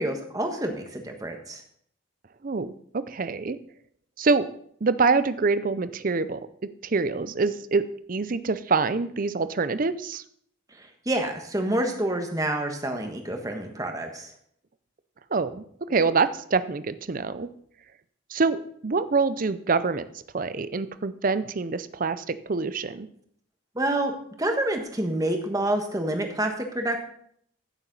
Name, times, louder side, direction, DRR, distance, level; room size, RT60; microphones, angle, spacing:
voice 1, 0.0-1.6 10.8-14.3 23.7-27.0, right 1 dB, 15° right, 4 dB, 1.2 m, -28 dB
voice 2, 2.4-3.6 4.2-4.5 4.8-6.4 6.8-10.2 15.3-17.5 18.3-20.1 20.3-23.1, right 4 dB, 40° right, 13 dB, 0.5 m, -25 dB
15.0 x 7.1 x 4.0 m, 0.65 s
head